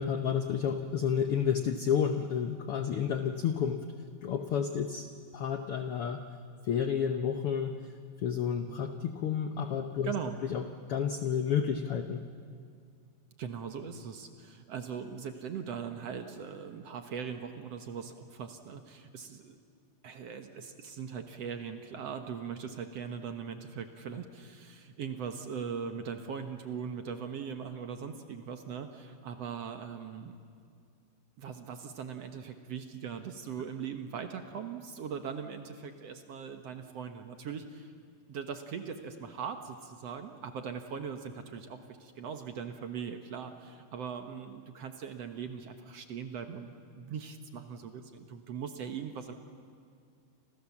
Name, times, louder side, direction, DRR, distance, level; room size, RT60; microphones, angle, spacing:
voice 1, 0.0-3.8 4.2-5.1 5.3-6.2 6.6-7.8 8.2-10.1 10.5-10.6 10.9-12.2, left 7 dB, 75° left, 7 dB, 1.3 m, -30 dB
voice 2, 10.0-10.4 13.4-19.6 20.0-30.4 31.4-37.9 38.3-49.3, right 7 dB, 60° right, 7 dB, 1.9 m, -40 dB
29.5 x 26.5 x 7.2 m, 2.3 s
omnidirectional pair, 3.9 m